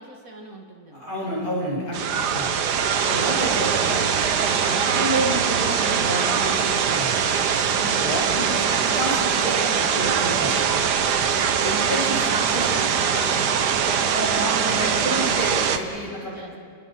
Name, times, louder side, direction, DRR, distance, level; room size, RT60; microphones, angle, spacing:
voice 1, 0.0-1.1 12.5-15.4 16.1-16.6, right 1 dB, 55° right, 1 dB, 2.6 m, -41 dB
voice 2, 0.9-2.6 3.0-4.0 4.5-7.2 7.7-10.6 11.6-12.9 14.0-16.3, right 1 dB, 60° left, -6 dB, 8.0 m, -29 dB
sound 1, 1.9-15.8, right 7 dB, 75° right, 1.7 m, -22 dB
Bowed string instrument, 3.3-7.8, right 7 dB, 30° right, 1.9 m, -40 dB
30.0 x 20.5 x 6.2 m, 2.1 s
omnidirectional pair, 1.8 m